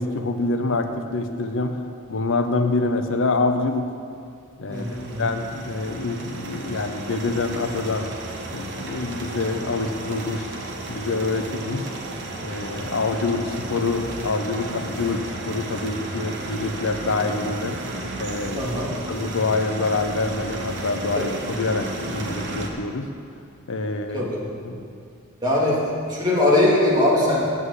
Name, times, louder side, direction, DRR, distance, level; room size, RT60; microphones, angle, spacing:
voice 1, 0.0-1.8 2.1-3.9 4.6-8.1 8.5-10.6 10.9-11.9 12.4-17.8 18.2-18.7 19.1-23.1 23.7-24.3 24.6-24.8, left 3 dB, 60° left, 7 dB, 0.7 m, -26 dB
voice 2, 4.7-5.2 18.5-18.9 24.1-24.4 25.4-27.5, left 1 dB, 20° right, -6 dB, 2.3 m, -21 dB
sound 1, 4.7-22.7, right 2 dB, 55° right, 1.2 m, -33 dB
8.2 x 7.7 x 8.1 m, 2.4 s
head